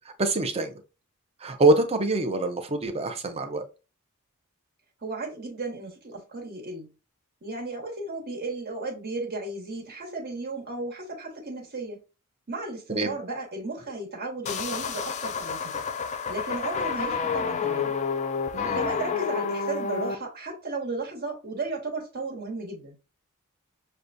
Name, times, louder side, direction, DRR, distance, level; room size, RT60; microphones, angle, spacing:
voice 1, 0.2-0.7 1.4-3.6 12.9-13.1 18.5-18.8, right 2 dB, 30° right, 0.6 m, -24 dB
voice 2, 5.0-6.9 7.4-12.0 12.5-15.8 16.3-17.9 18.6-23.0, right 2 dB, 50° right, 1.4 m, -34 dB
sound 1, 14.5-20.2, left 5 dB, 30° left, 0.3 m, -29 dB
6.4 x 2.2 x 2.6 m
head